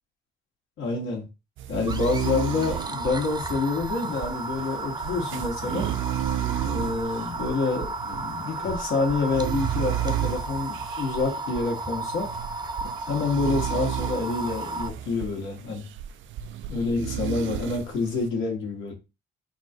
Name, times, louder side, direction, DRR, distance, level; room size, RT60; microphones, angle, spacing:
voice 1, 0.8-1.3 1.7-5.9 6.6-12.3 13.1-15.9 16.7-18.9, left 3 dB, 80° left, 1.8 m, -27 dB
sound 1, 1.6-18.3, right 11 dB, 75° right, 0.5 m, -33 dB
sound 2, 1.9-14.9, right 3 dB, 20° right, 0.7 m, -34 dB
4.1 x 2.6 x 4.4 m
cardioid pair, 90°, 20 cm